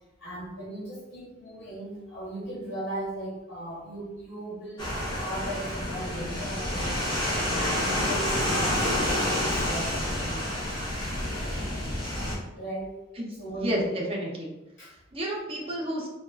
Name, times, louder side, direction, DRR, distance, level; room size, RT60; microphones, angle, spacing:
voice 1, 0.2-7.0 7.6-10.6 12.6-12.9 13.4-13.9 14.8-14.9, right 1 dB, 60° left, -9 dB, 1.2 m, -37 dB
sound 1, 4.8-12.3, left 1 dB, 20° left, 0.7 m, -28 dB
voice 2, 13.5-14.5 14.8-16.1, equal, 30° right, -3 dB, 0.5 m, -31 dB
3.4 x 2.2 x 2.3 m, 0.99 s
head